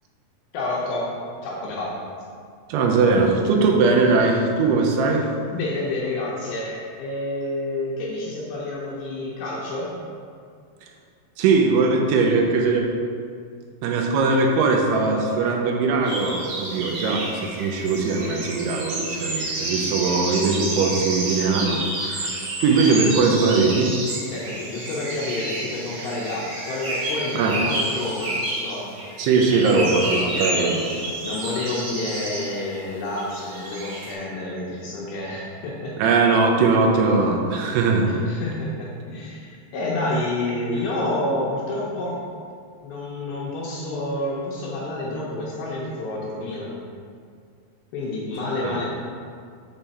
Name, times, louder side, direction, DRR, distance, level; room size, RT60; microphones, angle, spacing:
voice 1, 0.5-1.1 1.4-2.0 5.5-10.0 24.3-28.9 30.1-30.7 31.2-36.1 37.9-42.3 42.8-46.8 47.9-48.9, left 2 dB, 75° left, -4 dB, 2.4 m, -29 dB
voice 2, 2.7-5.3 11.4-12.9 13.8-23.9 27.3-27.6 29.2-30.8 36.0-38.1 48.6-48.7, right 4 dB, 80° right, 1 dB, 2.7 m, -20 dB
sound 1, 16.0-34.1, right 1 dB, 65° right, 2.9 m, -30 dB
7.3 x 3.4 x 4.1 m, 2.2 s
omnidirectional pair, 4.8 m